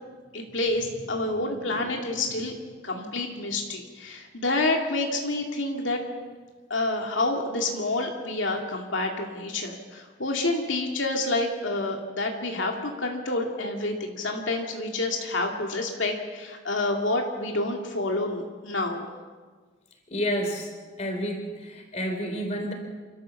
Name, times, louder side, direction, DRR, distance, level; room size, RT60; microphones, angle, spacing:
voice 1, 0.3-2.5 2.8-6.0 6.7-19.1, left 2 dB, 90° left, 2 dB, 2.3 m, -28 dB
voice 2, 1.3-2.3 20.1-20.7 21.0-22.7, equal, 35° left, 3 dB, 3.7 m, -31 dB
28.0 x 13.0 x 7.1 m, 1.4 s
head